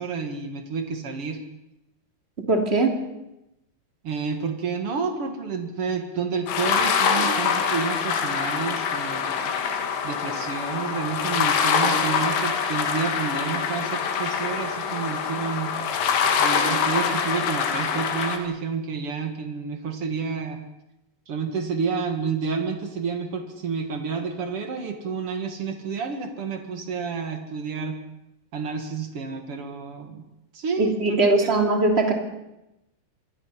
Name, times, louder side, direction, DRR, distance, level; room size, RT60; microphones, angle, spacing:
voice 1, 0.0-1.4 4.0-15.7 16.4-20.6 21.3-28.0 28.5-30.2 30.5-31.5, right 5 dB, 90° right, 5 dB, 1.2 m, -30 dB
voice 2, 2.5-3.0 30.8-32.1, right 2 dB, 20° right, 2 dB, 2.2 m, -20 dB
sound 1, 6.5-18.4, left 6 dB, 85° left, 4.6 m, -24 dB
26.5 x 22.5 x 5.8 m, 0.92 s
omnidirectional pair, 5.6 m